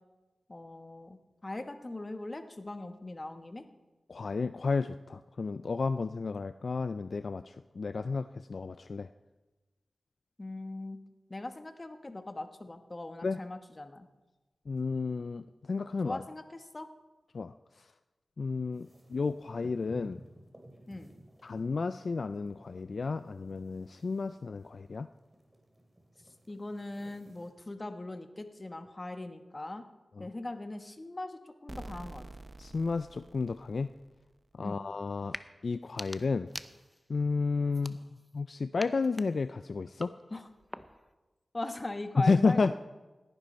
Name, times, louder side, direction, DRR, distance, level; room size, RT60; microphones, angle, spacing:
voice 1, 0.5-3.6 10.4-11.0 11.3-14.1 16.0-16.9 20.9-21.1 26.5-29.8 30.2-32.2 34.6-34.8 40.3-40.4 41.5-42.7, left 2 dB, 35° left, 8 dB, 1.2 m, -40 dB
voice 2, 4.1-9.1 13.2-13.4 14.7-15.4 15.7-16.2 17.3-17.5 18.4-20.2 21.4-25.1 30.2-30.3 32.6-33.9 34.6-35.4 35.6-36.5 37.1-38.0 38.3-40.1 42.2-42.7, left 4 dB, 70° left, 12 dB, 0.3 m, -31 dB
sound 1, 18.7-27.5, right 1 dB, 20° right, 3.0 m, -56 dB
sound 2, 31.7-34.4, right 2 dB, 35° right, 0.7 m, -48 dB
sound 3, 35.2-35.5 35.8-37.1 37.7-38.4 38.8-41.1, equal, 10° left, 0.8 m, -46 dB
17.5 x 10.5 x 4.3 m, 1.2 s
cardioid pair, 40°, 0 cm